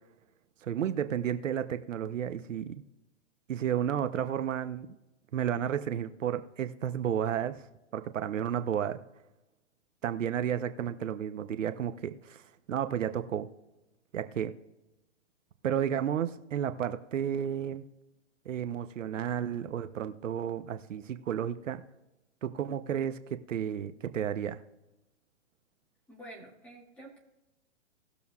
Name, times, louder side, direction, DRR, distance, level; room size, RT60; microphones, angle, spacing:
voice 1, 0.6-2.8 3.5-4.9 5.3-7.6 7.9-9.0 10.0-12.4 12.7-13.5 14.1-14.5 15.6-17.9 18.5-21.8 22.4-24.6, right 9 dB, 80° right, 10 dB, 0.9 m, -32 dB
voice 2, 26.1-27.2, right 1 dB, 5° left, -3 dB, 2.1 m, -48 dB
19.0 x 7.0 x 2.4 m, 1.0 s
hypercardioid pair, 155°, 37 cm